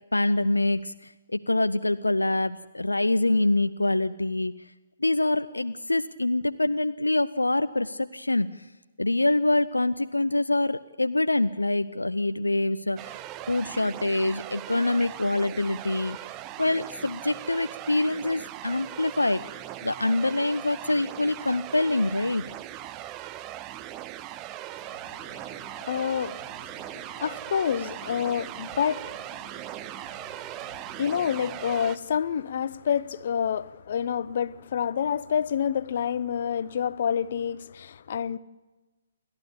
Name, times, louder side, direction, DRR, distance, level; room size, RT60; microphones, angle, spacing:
voice 1, 0.1-4.5 5.0-8.7 9.0-13.2 13.5-16.2 16.6-19.4 19.8-22.5, left 2 dB, 80° left, 0.6 m, -25 dB
sound 1, 13.0-32.0, right 13 dB, 20° right, 0.6 m, -39 dB
voice 2, 24.8-38.4, left 8 dB, 45° left, 0.8 m, -29 dB
29.0 x 12.5 x 8.5 m
figure-of-eight pair, 130°, 0 cm